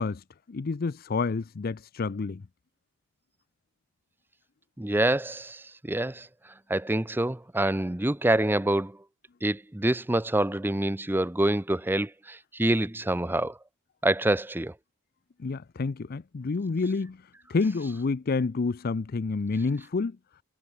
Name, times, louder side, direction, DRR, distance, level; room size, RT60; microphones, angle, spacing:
voice 1, 0.0-2.4 15.4-17.2 17.5-20.2, left 4 dB, 45° left, 0.5 m, -29 dB
voice 2, 4.8-6.3 6.7-9.0 9.4-13.6 14.0-14.7, right 1 dB, 10° right, 0.6 m, -26 dB
head